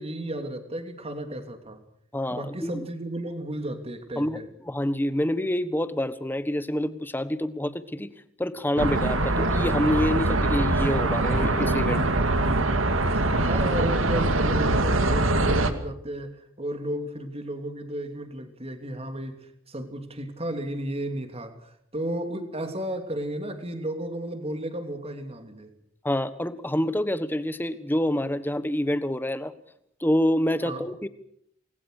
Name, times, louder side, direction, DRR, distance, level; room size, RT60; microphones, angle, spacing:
voice 1, 0.0-1.8 2.3-4.5 13.3-25.7 30.6-30.9, right 1 dB, 30° right, 7 dB, 3.1 m, -33 dB
voice 2, 2.1-2.9 4.2-8.1 8.4-12.1 26.0-29.5 30.0-31.1, left 1 dB, 10° left, 13 dB, 1.3 m, -27 dB
sound 1, 8.8-15.7, right 2 dB, 75° right, 2.4 m, -23 dB
28.5 x 21.0 x 6.6 m, 0.69 s
head